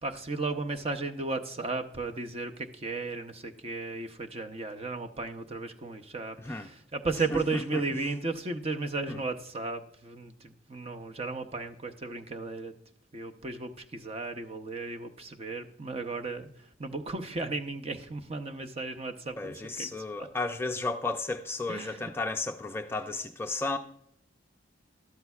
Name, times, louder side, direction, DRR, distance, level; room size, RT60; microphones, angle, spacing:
voice 1, 0.0-12.7 13.1-19.9 20.1-20.3 21.7-22.1, right 3 dB, 30° right, 5 dB, 0.7 m, -35 dB
voice 2, 19.4-23.8, left 3 dB, 15° left, 5 dB, 0.4 m, -33 dB
12.5 x 12.0 x 2.4 m, 0.67 s
head